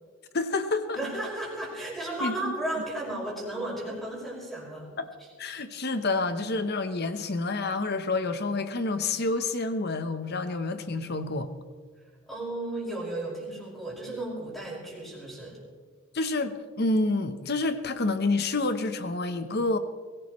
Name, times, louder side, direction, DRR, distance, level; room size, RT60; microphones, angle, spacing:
voice 1, 0.3-1.0 2.2-2.5 5.0-5.1 5.4-11.5 16.1-19.8, left 3 dB, 50° left, 10 dB, 1.0 m, -28 dB
voice 2, 0.9-5.3 12.3-15.6, right 1 dB, ahead, -5 dB, 5.6 m, -34 dB
23.0 x 17.0 x 3.2 m, 1.5 s
head